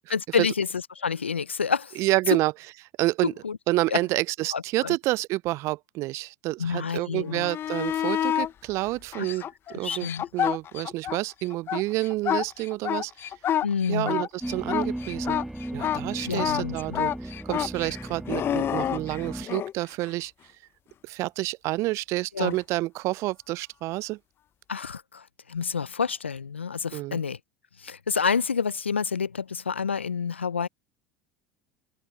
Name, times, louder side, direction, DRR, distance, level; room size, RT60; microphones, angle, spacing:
voice 1, 0.1-2.0 2.3-2.4 3.2-3.6 3.9-4.0 4.5-5.0 6.6-7.5 9.2-9.3 9.8-10.2 13.6-14.2 16.3-17.0 22.3-22.5 24.7-27.4 27.8-30.7, left 6 dB, 90° left, 0.6 m, -28 dB
voice 2, 2.0-2.5 3.0-3.3 3.7-9.4 9.7-13.1 13.9-15.4 15.7-20.3 21.0-24.2 26.9-27.2, right 19 dB, 50° right, 0.4 m, -29 dB
sound 1, 7.3-8.5 9.1-11.2 11.5-19.7 22.5-22.6, left 10 dB, 40° left, 0.9 m, -28 dB
sound 2, 14.4-19.5, right 1 dB, 5° right, 1.5 m, -35 dB
hypercardioid pair, 75°, 6 cm